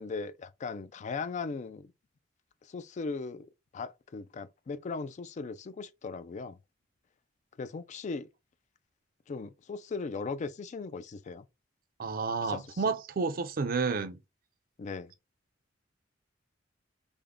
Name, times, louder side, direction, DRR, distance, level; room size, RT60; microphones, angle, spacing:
voice 1, 0.0-1.9 2.6-3.5 3.7-6.6 7.6-8.3 9.3-11.4 12.4-12.8 14.8-15.1, left 4 dB, 40° left, 0.3 m, -38 dB
voice 2, 12.0-14.2, right 4 dB, 50° right, 0.5 m, -30 dB
3.5 x 2.1 x 3.6 m
head